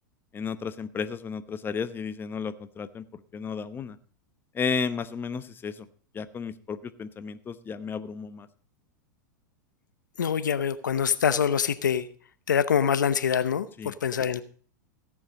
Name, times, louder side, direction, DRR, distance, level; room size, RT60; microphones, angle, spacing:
voice 1, 0.3-4.0 4.5-5.9 6.1-8.5 13.8-13.9, left 5 dB, 20° left, 12 dB, 0.9 m, -33 dB
voice 2, 10.2-12.1 12.5-14.4, left 7 dB, 85° left, 14 dB, 0.8 m, -25 dB
15.5 x 7.4 x 5.2 m, 0.44 s
hypercardioid pair, 100°, 10 cm